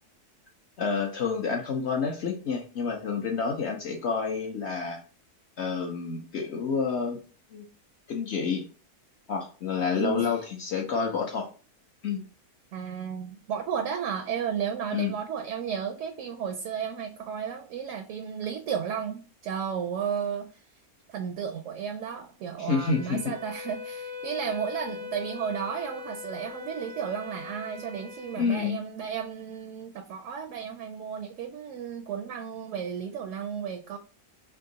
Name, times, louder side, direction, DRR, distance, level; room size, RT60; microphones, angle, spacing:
voice 1, 0.8-5.0 5.6-7.2 7.5-7.7 8.1-8.6 9.3-11.5 12.0-12.2 14.9-15.1 22.6-23.3 28.4-28.8, left 5 dB, 60° left, 2 dB, 0.8 m, -29 dB
voice 2, 10.0-10.4 12.7-20.6 21.1-34.0, right 7 dB, 70° right, 6 dB, 0.8 m, -33 dB
Wind instrument woodwind instrument, 22.7-28.5, left 5 dB, 50° right, 0.5 m, -41 dB
3.5 x 2.9 x 3.8 m, 0.38 s
omnidirectional pair, 1.6 m